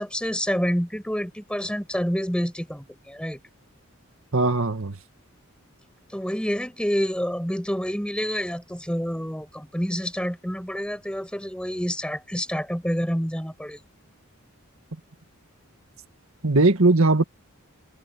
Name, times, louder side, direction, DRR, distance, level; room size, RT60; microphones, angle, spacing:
voice 1, 0.0-3.4 6.1-13.8, equal, 5° left, 5.4 m, -28 dB
voice 2, 4.3-5.0 16.4-17.2, right 2 dB, 75° right, 1.7 m, -19 dB
head